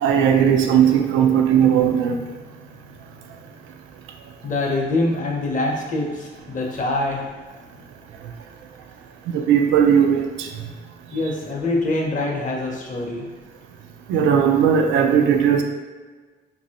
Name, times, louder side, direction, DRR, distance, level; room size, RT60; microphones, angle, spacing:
voice 1, 0.0-2.2 9.3-10.5 14.1-15.6, right 8 dB, 80° right, 4 dB, 0.4 m, -17 dB
voice 2, 4.4-7.2 11.1-13.3, left 2 dB, 40° left, -1 dB, 0.7 m, -24 dB
2.9 x 2.6 x 2.8 m, 1.4 s
cardioid pair, 90°, 20 cm